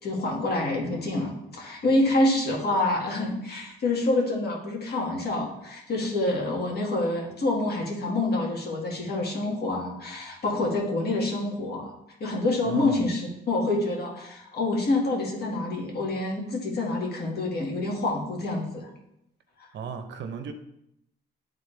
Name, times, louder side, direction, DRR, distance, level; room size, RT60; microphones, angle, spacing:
voice 1, 0.0-11.9 12.2-18.9, left 2 dB, 55° left, -1 dB, 2.0 m, -27 dB
voice 2, 12.6-13.0 19.7-20.5, right 6 dB, 65° right, 7 dB, 0.8 m, -35 dB
10.0 x 3.7 x 3.4 m, 0.80 s
cardioid pair, 90°, 20 cm